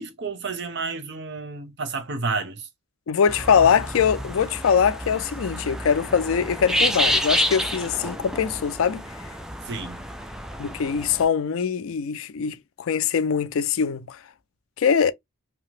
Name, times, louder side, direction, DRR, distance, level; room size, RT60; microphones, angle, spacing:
voice 1, 0.0-2.7 3.6-3.7 9.7-10.0, right 4 dB, 60° right, 0.7 m, -31 dB
voice 2, 3.1-9.0 10.6-14.2 14.8-15.1, left 7 dB, 80° left, 0.4 m, -22 dB
sound 1, 3.3-11.2, equal, ahead, 0.3 m, -29 dB
2.8 x 2.1 x 3.0 m
head